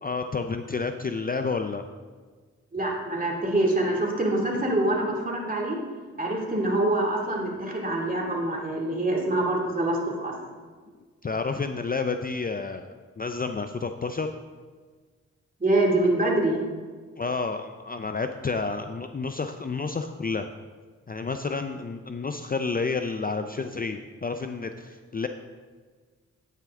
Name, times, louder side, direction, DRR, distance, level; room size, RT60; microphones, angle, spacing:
voice 1, 0.0-1.9 11.2-14.3 17.2-20.5 21.1-25.3, left 4 dB, 30° left, 7 dB, 0.5 m, -30 dB
voice 2, 2.7-5.8 6.2-10.4 15.6-16.6, right 1 dB, 30° right, -1 dB, 2.5 m, -25 dB
9.1 x 9.0 x 3.7 m, 1.5 s
cardioid pair, 60°, 30 cm